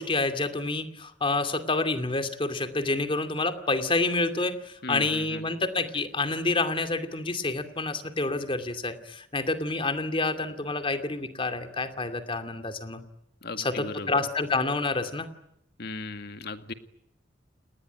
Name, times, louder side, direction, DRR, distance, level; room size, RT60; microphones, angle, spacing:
voice 1, 0.0-13.0 13.6-15.3, left 3 dB, 30° left, 9 dB, 2.5 m, -28 dB
voice 2, 4.8-5.4 13.4-14.2 15.8-16.7, left 3 dB, 60° left, 9 dB, 2.0 m, -37 dB
29.0 x 20.5 x 9.3 m, 0.80 s
head